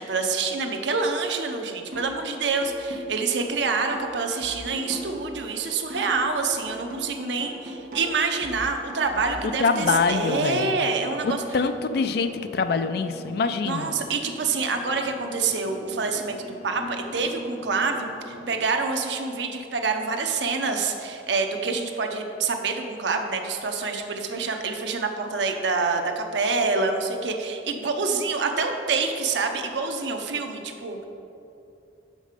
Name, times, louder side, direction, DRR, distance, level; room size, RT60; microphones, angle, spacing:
voice 1, 0.0-11.4 13.6-31.0, right 4 dB, 85° right, 4 dB, 0.7 m, -27 dB
sound 1, 1.9-2.2 2.6-6.3 6.6-9.9, equal, 50° right, 1.2 m, -39 dB
voice 2, 9.4-10.8 11.2-13.9, left 4 dB, 60° left, 9 dB, 0.4 m, -25 dB
sound 2, 10.9-18.6, left 1 dB, 20° left, 0.7 m, -43 dB
6.4 x 5.2 x 5.0 m, 2.8 s
head